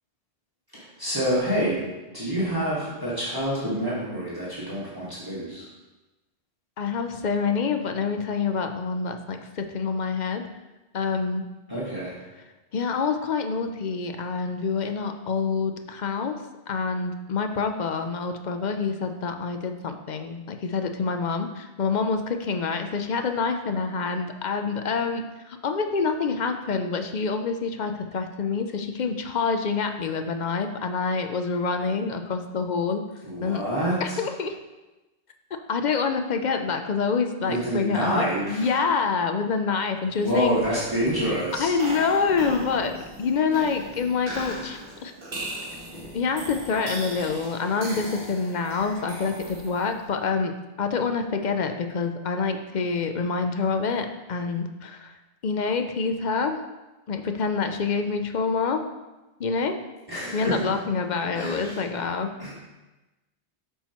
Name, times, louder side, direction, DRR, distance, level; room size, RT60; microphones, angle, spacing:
voice 1, 0.7-5.7 11.7-12.1 33.2-34.2 37.5-38.7 40.2-41.7 60.1-60.8 61.3-61.8 62.4-62.5, equal, 20° right, -8 dB, 1.7 m, -27 dB
voice 2, 6.8-10.5 10.9-11.4 12.7-16.4 16.7-33.1 33.4-33.6 34.0-34.6 35.7-40.6 41.6-45.1 46.1-50.5 50.8-55.2 55.4-56.6 57.1-58.8 59.4-59.8 60.3-62.3, left 5 dB, 50° left, 6 dB, 0.6 m, -27 dB
sound 1, 40.1-50.0, right 1 dB, 40° right, 1.3 m, -38 dB
8.5 x 5.6 x 3.0 m, 1.1 s
omnidirectional pair, 1.1 m